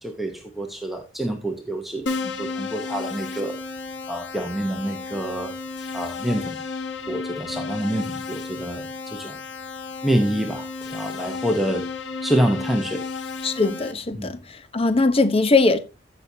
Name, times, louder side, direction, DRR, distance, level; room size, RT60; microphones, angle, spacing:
voice 1, 0.0-3.6 4.1-5.5 5.9-6.6 7.1-9.4 10.0-11.9 12.2-13.1 14.1-14.3, right 1 dB, ahead, 0.8 m, -27 dB
Keyboard (musical), 2.1-13.9, left 4 dB, 65° left, 1.2 m, -33 dB
voice 2, 13.4-15.8, left 3 dB, 30° left, 0.8 m, -20 dB
15.0 x 6.1 x 2.7 m
head